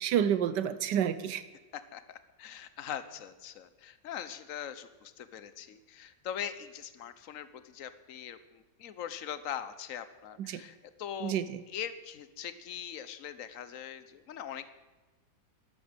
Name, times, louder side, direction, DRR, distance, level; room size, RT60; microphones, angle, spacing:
voice 1, 0.0-1.4 10.4-10.6 11.2-11.6, right 9 dB, 85° right, 14 dB, 1.4 m, -29 dB
voice 2, 1.7-11.3 11.7-14.7, left 9 dB, 55° left, 13 dB, 1.2 m, -41 dB
13.0 x 12.0 x 7.9 m, 1.2 s
omnidirectional pair, 1.8 m